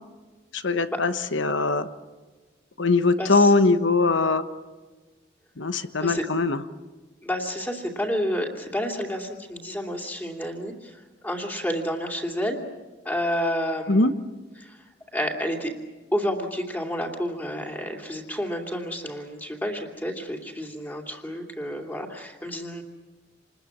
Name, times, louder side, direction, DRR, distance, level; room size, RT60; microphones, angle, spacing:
voice 1, 0.5-1.9 2.8-4.4 5.6-6.6 13.9-14.1, left 3 dB, 85° left, 11 dB, 1.2 m, -21 dB
voice 2, 3.2-3.5 6.0-6.2 7.2-12.6 13.0-14.1 14.6-14.8 15.1-15.7 16.1-22.8, equal, 10° left, 2 dB, 2.8 m, -30 dB
28.0 x 21.0 x 7.3 m, 1.3 s
head